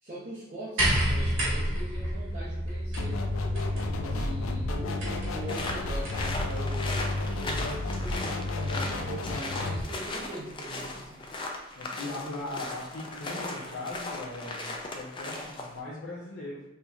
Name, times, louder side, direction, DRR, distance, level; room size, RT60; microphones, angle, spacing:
voice 1, 0.0-3.2 3.8-11.2, right 1 dB, 35° right, -10 dB, 0.8 m, -41 dB
sound 1, 0.8-6.4 7.5-7.6, right 1 dB, 75° right, 1.3 m, -31 dB
sound 2, 3.0-9.8, left 2 dB, 90° left, 0.4 m, -31 dB
sound 3, 5.5-15.8, left 2 dB, 25° left, 0.4 m, -37 dB
voice 2, 11.7-16.6, left 2 dB, 60° left, -8 dB, 0.7 m, -39 dB
4.3 x 2.7 x 2.3 m, 0.89 s
head